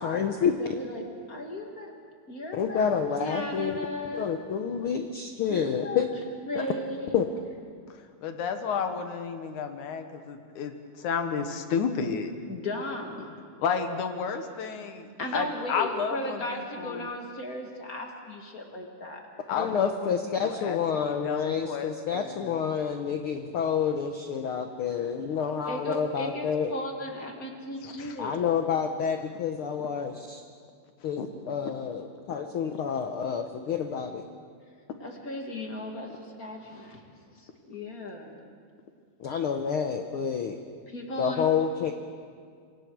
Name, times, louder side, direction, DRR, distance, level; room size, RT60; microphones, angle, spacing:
voice 1, 0.0-0.5 2.5-3.8 4.1-6.1 6.5-6.6 7.1-7.3 19.6-26.7 28.2-30.4 31.0-31.2 31.5-34.2 39.2-40.6 41.2-41.9, left 7 dB, 90° left, 6 dB, 1.1 m, -28 dB
voice 2, 0.6-1.9 2.3-2.8 3.2-4.3 5.5-7.2 12.5-13.3 15.2-19.2 25.7-28.5 35.0-37.1 37.4-38.4 40.9-41.5, left 1 dB, 30° left, 2 dB, 2.0 m, -36 dB
voice 3, 7.9-12.3 13.6-17.1 19.5-20.1 20.4-22.7 27.8-28.2 31.2-31.3 32.3-32.4, left 6 dB, 70° left, 6 dB, 2.7 m, -32 dB
27.0 x 24.0 x 4.7 m, 2.1 s
omnidirectional pair, 3.7 m